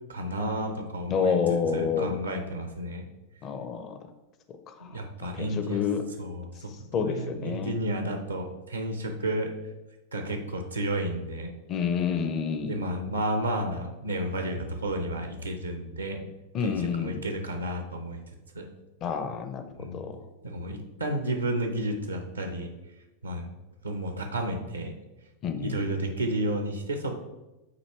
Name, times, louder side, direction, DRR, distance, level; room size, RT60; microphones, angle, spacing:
voice 1, 0.1-1.4 1.7-3.0 4.8-5.8 6.2-6.7 7.0-9.5 10.1-11.5 12.7-16.2 16.6-18.2 18.5-18.7 19.8-20.1 20.4-22.7 23.2-23.5 23.8-24.9 25.6-27.1, right 1 dB, 80° right, 4 dB, 0.8 m, -31 dB
voice 2, 1.1-2.1 3.4-3.9 4.7-6.0 6.9-7.7 11.7-12.8 16.5-17.2 19.0-20.2 25.4-25.8, left 6 dB, 35° left, 8 dB, 0.6 m, -29 dB
8.1 x 2.9 x 4.4 m, 1.0 s
figure-of-eight pair, 90°, 0 cm